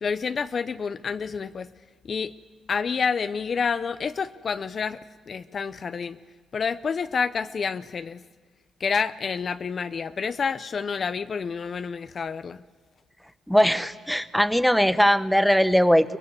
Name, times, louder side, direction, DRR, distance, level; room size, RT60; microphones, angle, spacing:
voice 1, 0.0-1.7 2.0-2.3 2.7-5.0 5.3-6.2 6.5-8.2 8.8-12.6, left 5 dB, 50° left, 12 dB, 0.6 m, -28 dB
voice 2, 13.5-16.2, equal, ahead, 11 dB, 1.0 m, -20 dB
23.5 x 20.5 x 8.2 m, 1.6 s
cardioid pair, 90°, 0 cm